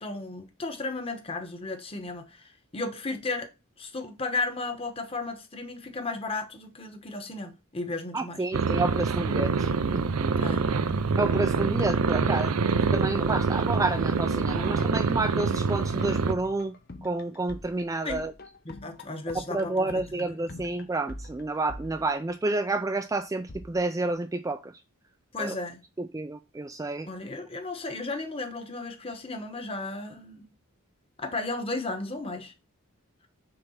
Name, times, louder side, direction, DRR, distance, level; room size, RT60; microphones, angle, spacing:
voice 1, 0.0-3.5 3.8-8.4 10.3-10.7 12.8-12.9 18.0-18.3 18.6-20.7 25.3-25.8 27.1-30.5 31.2-32.5, left 3 dB, 25° left, 1.1 m, -34 dB
voice 2, 8.1-10.0 11.2-12.5 12.9-16.7 17.0-18.3 19.5-24.7 25.4-25.6 26.0-27.1, right 2 dB, 15° right, 0.3 m, -29 dB
sound 1, 8.5-16.3, right 4 dB, 85° right, 0.5 m, -26 dB
sound 2, 10.7-22.6 23.5-24.1, left 2 dB, 45° left, 0.8 m, -45 dB
6.8 x 3.4 x 5.6 m
head